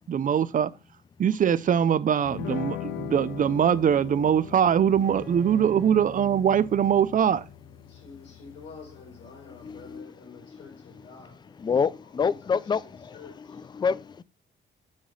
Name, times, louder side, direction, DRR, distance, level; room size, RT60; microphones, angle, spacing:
voice 1, 0.1-0.7 1.2-7.4, right 8 dB, 40° right, 0.5 m, -22 dB
sound 1, 2.3-10.0, left 12 dB, 85° left, 0.5 m, -41 dB
Bowed string instrument, 5.0-8.6, left 1 dB, 5° left, 1.4 m, -46 dB
voice 2, 7.9-11.5 12.0-13.7, left 4 dB, 70° left, 3.4 m, -48 dB
voice 3, 9.6-10.1 11.6-14.2, left 6 dB, 20° left, 0.4 m, -28 dB
6.4 x 3.1 x 5.4 m
cardioid pair, 90°, 20 cm